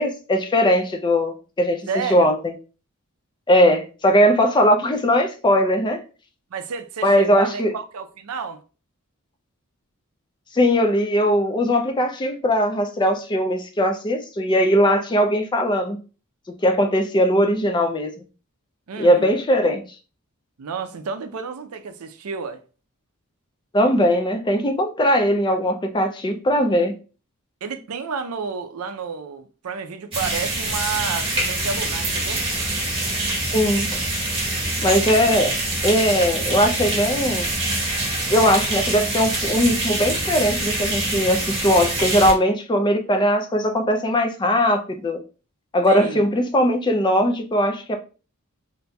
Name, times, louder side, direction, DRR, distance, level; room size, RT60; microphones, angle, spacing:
voice 1, 0.0-1.8 2.1-2.5 3.5-6.0 7.0-7.7 10.5-16.0 16.6-18.2 19.0-19.8 23.7-26.9 33.5-33.9 34.8-35.5 35.8-37.5 38.3-45.2 45.7-48.0, equal, 20° left, 0.4 m, -19 dB
voice 2, 1.9-2.3 6.5-8.6 18.9-19.3 20.6-22.6 27.6-32.7 45.9-46.2, right 5 dB, 75° right, 0.5 m, -31 dB
sound 1, 30.1-42.3, right 2 dB, 25° right, 1.1 m, -25 dB
4.0 x 2.6 x 2.2 m
head